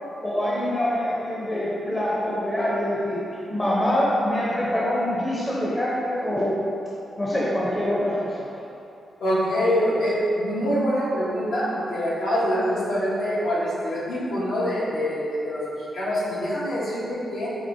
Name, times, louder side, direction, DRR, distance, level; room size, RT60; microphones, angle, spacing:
voice 1, 0.2-3.2 3.5-6.6 7.2-8.4, left 1 dB, 20° left, -7 dB, 0.6 m, -25 dB
voice 2, 9.2-17.5, equal, 80° left, -9 dB, 1.2 m, -25 dB
5.2 x 2.9 x 2.7 m, 2.8 s
wide cardioid pair, 120°, 0 cm